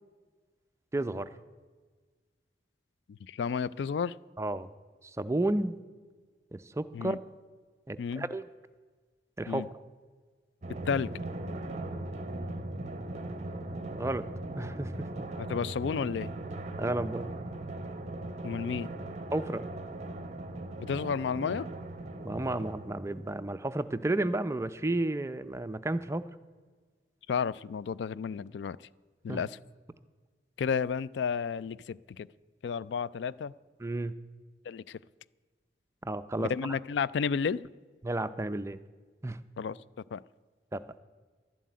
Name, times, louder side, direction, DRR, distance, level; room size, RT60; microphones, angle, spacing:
voice 1, 0.9-1.3 4.4-4.7 5.2-5.8 6.5-7.2 7.9-8.4 9.4-9.7 14.0-14.3 14.6-14.9 16.8-17.3 19.3-19.6 22.2-26.3 29.3-29.4 33.8-34.1 36.1-36.8 38.0-38.8 39.2-39.4 40.7-40.8, right 2 dB, 15° right, 12 dB, 0.5 m, -32 dB
voice 2, 3.2-4.1 6.9-7.2 8.0-8.3 9.5-9.7 10.9-11.1 15.4-16.3 18.4-18.9 20.8-21.7 27.3-28.8 29.2-29.6 30.6-32.3 32.6-33.5 34.6-35.0 36.4-37.6 39.6-39.8 40.1-40.2, left 6 dB, 75° left, 20 dB, 0.3 m, -32 dB
Drum, 10.6-23.7, right 2 dB, 40° right, 0.8 m, -39 dB
12.0 x 7.5 x 9.4 m, 1.5 s
head